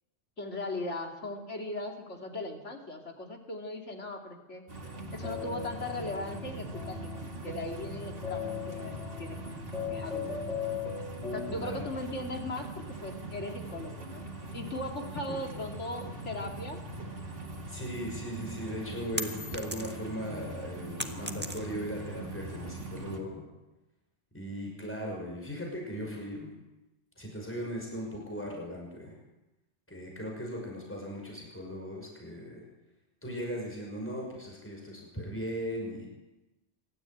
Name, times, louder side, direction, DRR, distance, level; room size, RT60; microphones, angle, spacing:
voice 1, 0.4-4.6 5.1-10.3 11.3-16.8, left 2 dB, 90° left, 2 dB, 3.0 m, -38 dB
pumping water, 4.7-23.2, right 2 dB, 50° right, 2.6 m, -42 dB
sound 1, 4.8-11.8, left 7 dB, 70° left, 3.5 m, -39 dB
voice 2, 11.5-11.9 15.3-15.4 17.7-23.4 24.3-26.5 27.2-29.2 29.9-32.6 33.2-36.1, equal, 10° left, -1 dB, 5.8 m, -38 dB
sound 2, 19.2-20.2 20.5-22.0, equal, 10° right, 1.5 m, -38 dB
24.5 x 13.0 x 9.2 m, 1.0 s
omnidirectional pair, 1.2 m